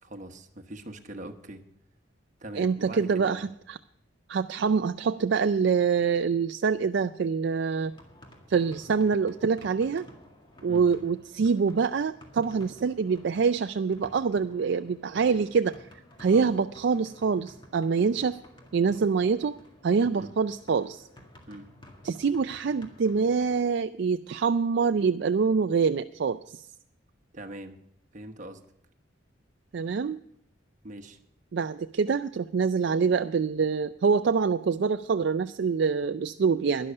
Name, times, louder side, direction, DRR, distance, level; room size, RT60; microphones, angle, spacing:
voice 1, 0.0-1.6 2.4-3.5 10.7-10.9 16.3-16.6 20.2-20.3 21.5-21.7 27.3-27.8 28.1-28.6 30.8-31.2, right 1 dB, 40° right, 5 dB, 1.1 m, -42 dB
voice 2, 2.6-3.8 4.3-7.9 8.5-10.0 10.6-15.9 16.2-18.4 18.7-19.6 19.8-21.1 22.0-26.7 29.7-30.2 31.5-36.9, right 5 dB, 60° right, 9 dB, 0.4 m, -25 dB
sound 1, 7.8-23.6, left 1 dB, 25° left, 1.9 m, -53 dB
12.0 x 11.0 x 5.5 m, 0.74 s
head